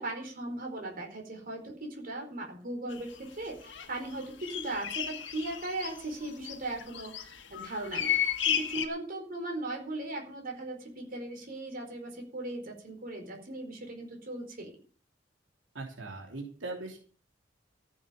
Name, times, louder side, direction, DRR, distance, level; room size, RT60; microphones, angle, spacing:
voice 1, 0.0-8.2 8.5-14.8, right 2 dB, 50° right, 2 dB, 4.6 m, -38 dB
sound 1, 2.9-3.0 3.6-3.9 4.2-8.9, left 9 dB, 75° left, 1.7 m, -33 dB
voice 2, 15.7-17.0, right 2 dB, 90° right, 1 dB, 3.2 m, -40 dB
14.5 x 8.0 x 7.0 m, 0.42 s
head